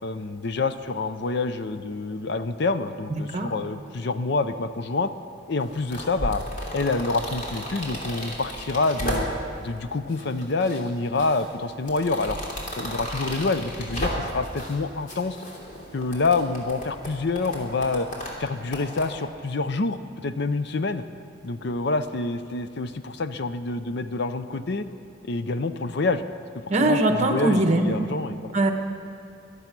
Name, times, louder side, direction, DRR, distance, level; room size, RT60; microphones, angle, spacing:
voice 1, 0.0-5.1 5.5-6.4 6.7-9.3 9.6-12.4 12.8-15.4 15.9-18.1 18.4-21.0 21.4-24.9 25.2-26.2 26.8-28.5, left 3 dB, 60° left, 11 dB, 0.6 m, -27 dB
voice 2, 3.1-3.5 26.7-27.9 28.5-28.7, right 1 dB, 35° right, 5 dB, 1.3 m, -21 dB
Going quickly through the pages of a book, 5.6-9.6 10.1-10.8 11.2-14.8 15.1-19.1, equal, 40° left, 3.0 m, -33 dB
24.0 x 8.3 x 6.0 m, 2.5 s
head